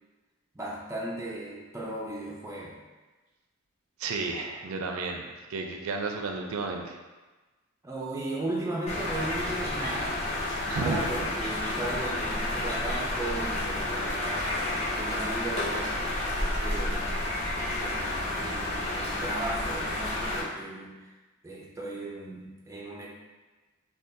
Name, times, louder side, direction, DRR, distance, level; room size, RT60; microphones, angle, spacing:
voice 1, 0.5-2.8 7.8-10.3 10.6-15.9 16.6-17.3 17.8-21.1 21.4-23.1, right 2 dB, 15° right, -3 dB, 0.4 m, -36 dB
voice 2, 4.0-7.0 10.7-11.1 11.6-11.7, right 4 dB, 85° right, 3 dB, 0.4 m, -33 dB
sound 1, 8.9-20.4, left 1 dB, 30° left, 0.7 m, -30 dB
3.6 x 2.3 x 2.6 m, 1.2 s
head